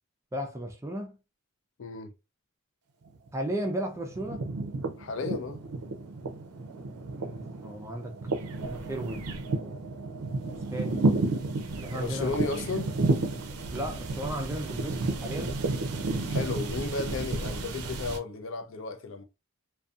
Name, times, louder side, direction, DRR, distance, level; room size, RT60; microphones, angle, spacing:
voice 1, 0.3-1.2 3.3-4.5 7.2-9.9 10.5-11.2 11.8-12.5 13.7-15.6, right 1 dB, 10° right, 0.3 m, -36 dB
voice 2, 1.8-2.1 5.0-5.6 11.9-12.9 16.3-19.2, left 4 dB, 60° left, 0.4 m, -34 dB
sound 1, 3.1-3.7 3.9-18.2, right 2 dB, 85° right, 0.5 m, -32 dB
2.6 x 2.2 x 2.3 m
head